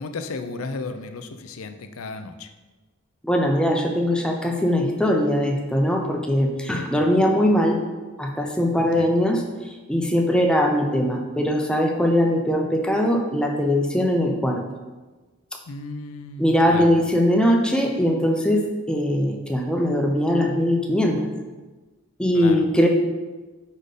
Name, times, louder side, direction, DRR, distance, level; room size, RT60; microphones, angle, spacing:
voice 1, 0.0-2.5 7.0-7.1 8.8-9.1 15.7-17.0 22.3-22.7, left 3 dB, 80° left, 8 dB, 0.5 m, -34 dB
voice 2, 3.2-7.8 8.2-9.4 9.9-14.6 16.4-21.2 22.2-22.9, equal, 5° left, 2 dB, 0.6 m, -21 dB
5.2 x 4.3 x 5.0 m, 1.2 s
head